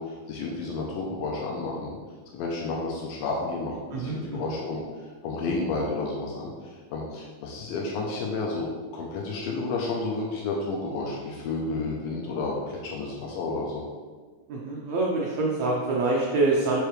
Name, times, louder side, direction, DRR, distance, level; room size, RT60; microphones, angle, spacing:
voice 1, 0.0-2.0 2.3-4.8 5.2-8.7 8.9-13.8, left 3 dB, 80° left, -2 dB, 2.5 m, -31 dB
voice 2, 3.9-4.5 14.5-16.8, right 3 dB, 85° right, -3 dB, 1.5 m, -26 dB
6.6 x 5.8 x 3.2 m, 1.5 s
omnidirectional pair, 4.3 m